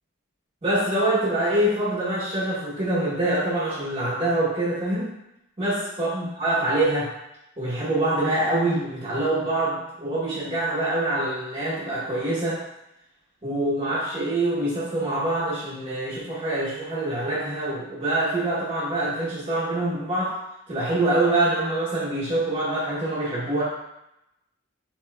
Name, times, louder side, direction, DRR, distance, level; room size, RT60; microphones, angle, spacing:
voice 1, 0.6-5.1 5.6-7.1 7.6-12.6 13.4-23.6, right 1 dB, 30° right, -10 dB, 1.0 m, -25 dB
7.4 x 2.9 x 2.2 m, 0.86 s
head